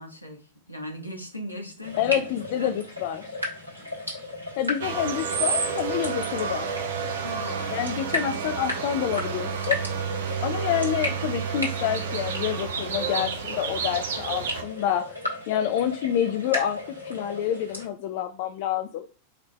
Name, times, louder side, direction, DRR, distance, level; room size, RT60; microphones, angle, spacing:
voice 1, 0.0-2.2 2.6-2.7 7.2-8.0 8.3-8.4, left 1 dB, 85° left, 2 dB, 1.2 m, -38 dB
sound 1, 1.8-17.9, left 1 dB, 80° right, 1.6 m, -35 dB
voice 2, 2.0-3.2 4.6-6.7 7.7-9.8 10.4-15.1 15.5-19.1, left 10 dB, 50° left, 8 dB, 0.4 m, -28 dB
sound 2, 4.8-14.6, right 6 dB, 60° right, 0.8 m, -30 dB
4.8 x 3.3 x 3.2 m, 0.35 s
figure-of-eight pair, 90°, 0 cm